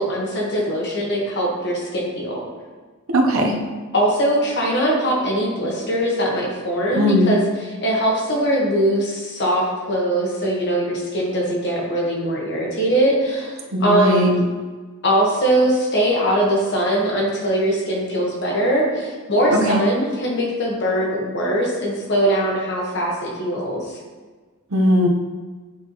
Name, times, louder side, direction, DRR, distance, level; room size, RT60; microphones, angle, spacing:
voice 1, 0.0-2.4 3.9-7.4 7.8-14.3 15.0-24.0, right 1 dB, 55° left, -2 dB, 1.3 m, -21 dB
voice 2, 3.1-3.6 6.9-7.3 13.7-14.4 19.5-19.8 24.7-25.1, equal, 70° right, 1 dB, 0.8 m, -18 dB
7.7 x 4.4 x 3.0 m, 1.4 s
head